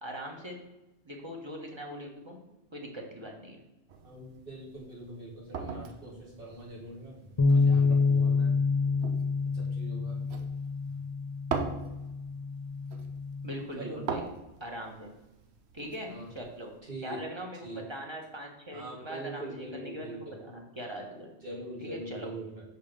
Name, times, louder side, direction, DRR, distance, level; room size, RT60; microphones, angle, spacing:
voice 1, 0.0-0.6 1.0-2.4 2.7-3.6 13.4-14.2 14.6-15.1 15.7-16.7 17.0-21.3 21.8-22.3, equal, 25° right, 0 dB, 1.3 m, -41 dB
sound 1, 3.9-16.8, right 5 dB, 85° right, 1.0 m, -42 dB
voice 2, 4.0-8.6 9.4-10.3 13.8-14.0 16.1-16.3 16.8-17.2 17.6-17.8 18.7-20.4 21.4-22.6, right 1 dB, 60° right, -4 dB, 2.3 m, -42 dB
sound 2, 7.4-13.6, left 4 dB, 35° left, 0.5 m, -27 dB
5.5 x 5.0 x 6.5 m, 0.97 s
omnidirectional pair, 1.1 m